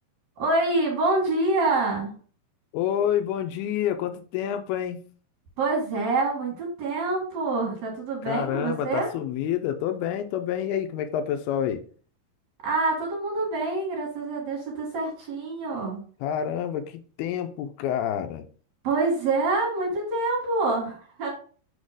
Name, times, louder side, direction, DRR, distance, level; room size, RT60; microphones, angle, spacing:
voice 1, 0.4-2.1 5.6-9.1 12.6-16.0 18.8-21.3, right 3 dB, 55° right, -1 dB, 2.4 m, -26 dB
voice 2, 2.7-5.0 8.2-11.8 16.2-18.4, left 10 dB, 80° left, 7 dB, 2.5 m, -28 dB
5.7 x 4.3 x 4.8 m, 0.42 s
omnidirectional pair, 4.6 m